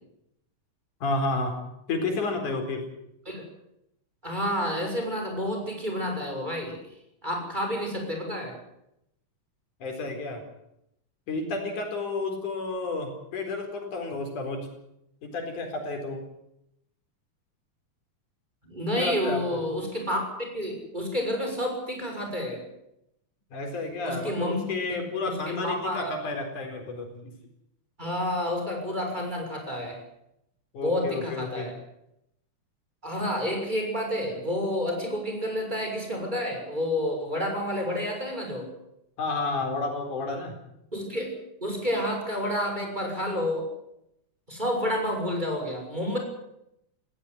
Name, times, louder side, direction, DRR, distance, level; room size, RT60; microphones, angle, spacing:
voice 1, 1.0-1.6 1.9-2.9 9.8-10.4 11.3-14.7 15.2-16.2 19.0-19.6 23.5-27.3 30.7-31.7 39.2-40.6, left 3 dB, 90° left, 4 dB, 5.8 m, -31 dB
voice 2, 4.2-6.8 7.2-8.5 18.6-20.2 20.5-22.6 24.0-24.6 24.9-26.1 28.0-30.0 30.8-31.7 33.0-38.7 40.9-41.3 41.6-43.7 44.5-46.2, equal, 15° right, 2 dB, 6.6 m, -29 dB
19.5 x 17.5 x 9.8 m, 0.81 s
omnidirectional pair, 3.4 m